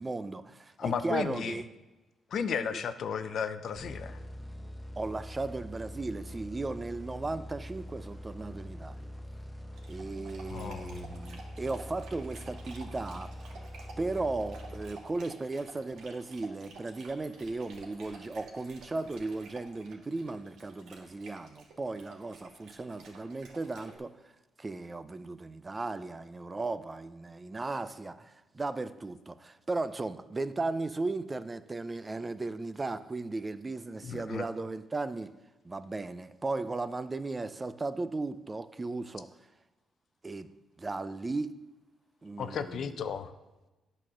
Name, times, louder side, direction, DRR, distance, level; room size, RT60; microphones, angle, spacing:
voice 1, 0.0-1.6 2.7-2.8 5.0-9.1 9.9-13.3 14.0-24.1 24.6-35.3 35.6-39.3 40.2-40.5 40.8-41.6 42.2-42.9, right 3 dB, 25° right, 0.4 m, -36 dB
voice 2, 0.8-1.6 2.3-4.2 10.5-11.3 34.0-34.4 42.4-43.3, left 7 dB, 60° left, 0.6 m, -34 dB
sound 1, 3.7-15.4, equal, 5° left, 1.0 m, -44 dB
Dog, 9.7-24.0, right 3 dB, 75° right, 1.6 m, -52 dB
8.8 x 4.2 x 6.2 m
cardioid pair, 90°, 0 cm